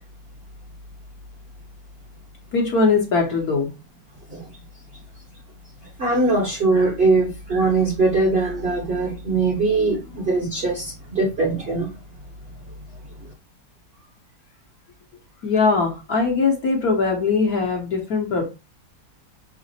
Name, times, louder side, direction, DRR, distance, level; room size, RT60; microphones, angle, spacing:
voice 1, 2.5-3.7 15.4-18.5, left 4 dB, 55° left, 1 dB, 1.3 m, -21 dB
voice 2, 6.0-11.9, right 3 dB, 40° right, -1 dB, 1.1 m, -21 dB
5.9 x 2.0 x 4.1 m, 0.27 s
omnidirectional pair, 2.1 m